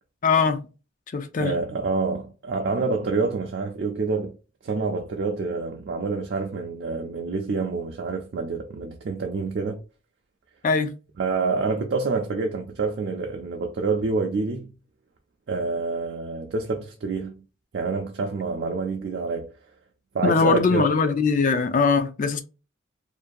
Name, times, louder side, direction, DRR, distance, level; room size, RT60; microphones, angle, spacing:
voice 1, 0.2-0.6 1.1-1.5 10.6-10.9 20.2-22.4, left 5 dB, 45° left, 0.4 m, -21 dB
voice 2, 1.4-4.4 4.6-9.8 11.2-14.7 15.5-17.4 17.7-19.5 20.1-20.9, right 4 dB, 60° right, 0.4 m, -27 dB
2.6 x 2.2 x 2.5 m
head